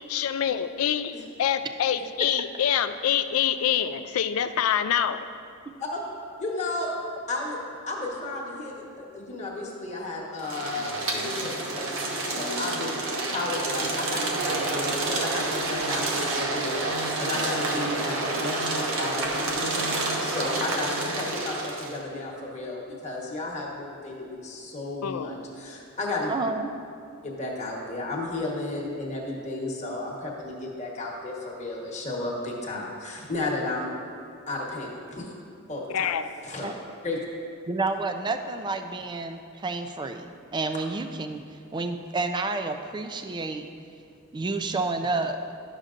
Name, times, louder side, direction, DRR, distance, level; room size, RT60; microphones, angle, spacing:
voice 1, 0.1-5.3 25.0-25.3 35.9-36.3, left 9 dB, 70° left, 11 dB, 0.3 m, -26 dB
voice 2, 6.4-6.9 7.3-7.6 7.9-12.9 13.3-26.3 27.2-33.9 34.5-35.3 35.7-36.1 36.4-36.7 37.0-37.2, left 2 dB, 35° left, -3 dB, 1.2 m, -33 dB
sound 1, 10.4-22.0, right 2 dB, 65° right, 0.9 m, -29 dB
voice 3, 26.3-26.7 36.6-36.7 37.7-41.4 41.7-43.7 44.3-45.4, right 3 dB, 20° right, 7 dB, 0.3 m, -30 dB
11.5 x 6.5 x 2.5 m, 2.4 s
head